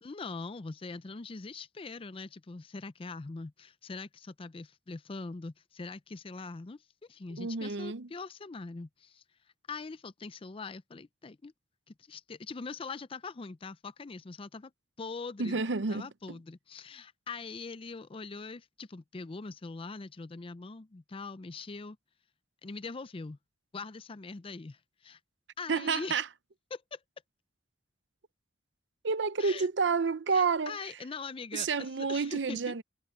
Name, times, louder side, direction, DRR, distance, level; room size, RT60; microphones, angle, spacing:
voice 1, 0.0-9.2 9.7-11.5 11.9-14.7 15.0-15.6 15.9-22.0 22.6-23.4 23.7-25.2 25.6-26.2 26.7-27.0 29.4-29.7 30.3-32.7, left 4 dB, 30° left, 0.5 m, -42 dB
voice 2, 7.4-8.1 15.4-16.4 25.7-26.3 29.0-30.8 31.5-32.8, right 4 dB, 70° right, 0.7 m, -30 dB
head